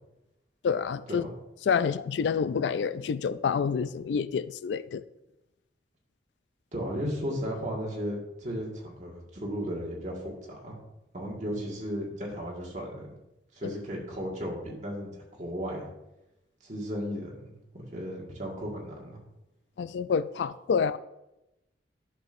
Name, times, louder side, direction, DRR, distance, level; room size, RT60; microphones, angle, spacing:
voice 1, 0.6-1.2 1.7-5.0 13.6-13.7 19.8-21.0, left 6 dB, 85° left, 0.3 m, -28 dB
voice 2, 6.7-10.8 11.1-13.1 13.5-15.9 16.6-19.2, equal, 40° right, 1.8 m, -35 dB
11.0 x 6.0 x 2.6 m
head